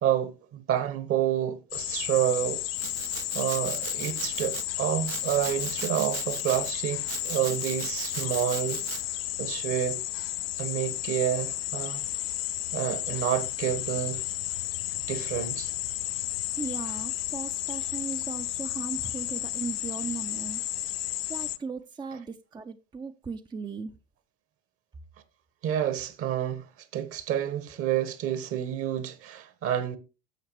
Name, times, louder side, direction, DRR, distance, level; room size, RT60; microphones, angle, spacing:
voice 1, 0.0-2.6 3.3-8.8 9.4-10.0 10.6-12.0 12.7-14.2 15.1-15.7 25.6-26.6 26.9-30.0, right 10 dB, 45° right, 1.4 m, -29 dB
sound 1, 1.7-21.6, left 16 dB, 70° left, 0.5 m, -33 dB
Domestic sounds home sounds, 2.8-4.6 5.0-6.7 7.1-9.0, right 12 dB, 70° right, 0.9 m, -39 dB
voice 2, 16.6-20.6 21.3-23.9, right 5 dB, 15° right, 0.6 m, -37 dB
11.0 x 7.2 x 3.1 m
figure-of-eight pair, 70°, 31 cm